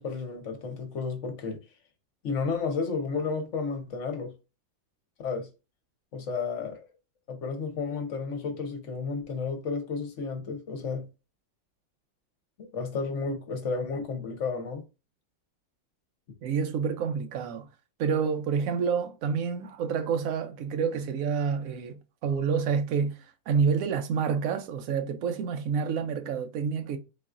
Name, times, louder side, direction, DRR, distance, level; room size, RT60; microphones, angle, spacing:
voice 1, 0.0-1.6 2.2-4.3 5.2-5.5 6.1-6.8 7.3-11.1 12.6-14.8, left 4 dB, 55° left, 0.9 m, -32 dB
voice 2, 16.4-17.7 18.0-27.0, right 6 dB, 85° right, 0.7 m, -28 dB
4.1 x 3.9 x 2.5 m
omnidirectional pair, 2.0 m